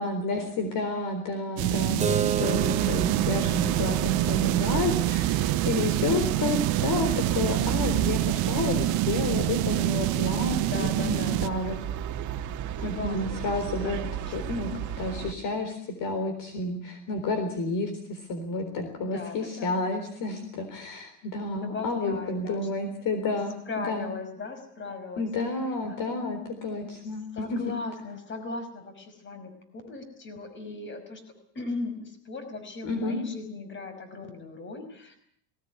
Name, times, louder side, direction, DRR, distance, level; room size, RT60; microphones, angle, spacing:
voice 1, 0.0-11.8 12.8-14.0 14.3-14.7 15.0-24.1 25.2-27.6 32.8-33.2, left 3 dB, 50° left, 7 dB, 4.0 m, -30 dB
sound 1, 1.6-11.5, right 16 dB, 60° right, 1.0 m, -26 dB
Keyboard (musical), 2.0-7.1, right 6 dB, 15° right, 1.0 m, -34 dB
sound 2, 2.4-15.3, right 10 dB, 40° right, 1.9 m, -33 dB
voice 2, 3.0-3.9 10.6-11.5 12.8-13.4 13.8-14.3 19.0-19.8 21.5-22.9 23.7-25.3 25.9-26.0 27.3-29.5 29.9-31.2 31.5-35.2, left 3 dB, 25° left, 8 dB, 5.5 m, -38 dB
19.5 x 18.5 x 9.6 m, 0.66 s
cardioid pair, 145°, 43 cm